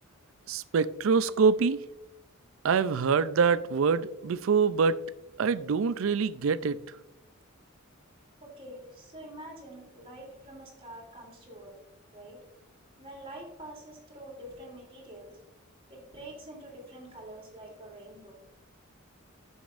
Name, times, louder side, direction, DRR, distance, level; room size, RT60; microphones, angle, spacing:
voice 1, 0.5-1.8 2.6-5.0 5.4-6.8, right 5 dB, 70° right, 0.4 m, -25 dB
voice 2, 8.4-11.8 12.1-12.4 13.0-15.4 15.9-18.4, right 1 dB, 25° right, 2.9 m, -46 dB
10.5 x 7.2 x 2.5 m
head